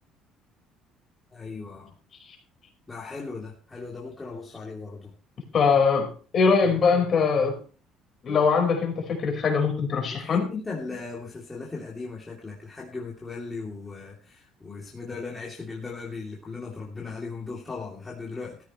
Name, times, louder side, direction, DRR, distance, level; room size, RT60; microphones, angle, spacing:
voice 1, 1.3-1.9 2.9-5.1 10.1-18.6, left 4 dB, 15° left, -3 dB, 3.1 m, -37 dB
voice 2, 5.5-7.6 8.2-10.4, left 5 dB, 35° left, 3 dB, 4.9 m, -22 dB
16.0 x 14.5 x 3.2 m, 0.38 s
cardioid pair, 160°, 0 cm